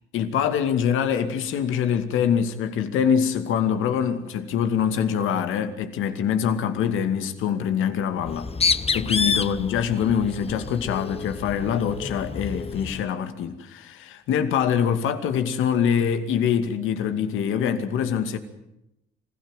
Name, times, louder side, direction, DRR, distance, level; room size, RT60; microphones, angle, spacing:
voice 1, 0.1-8.5 8.9-18.4, left 8 dB, 90° left, 2.4 m, -24 dB
Bird, 8.2-13.1, left 5 dB, 30° left, 1.1 m, -28 dB
26.5 x 16.5 x 9.1 m
cardioid pair, 90°, 20 cm